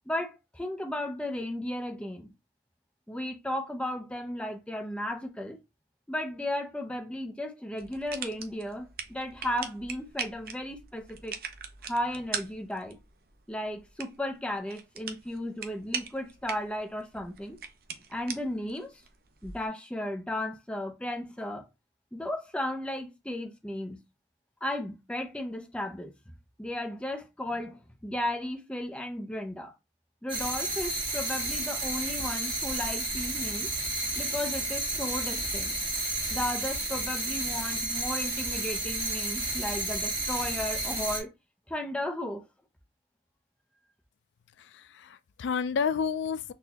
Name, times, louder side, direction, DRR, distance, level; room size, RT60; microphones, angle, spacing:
voice 1, 0.1-2.3 3.1-5.6 6.1-11.4 11.8-13.0 13.5-17.6 18.1-19.0 19.4-21.7 22.1-24.0 24.6-29.7 30.2-33.7 34.2-35.7 36.3-41.3 41.7-42.4, left 1 dB, 5° left, 0.5 m, -35 dB
sound 1, 7.8-19.7, right 6 dB, 55° right, 0.5 m, -42 dB
sound 2, 30.3-41.2, right 2 dB, 30° right, 1.4 m, -32 dB
voice 2, 44.6-46.5, left 6 dB, 85° left, 0.3 m, -30 dB
3.9 x 2.6 x 2.8 m
head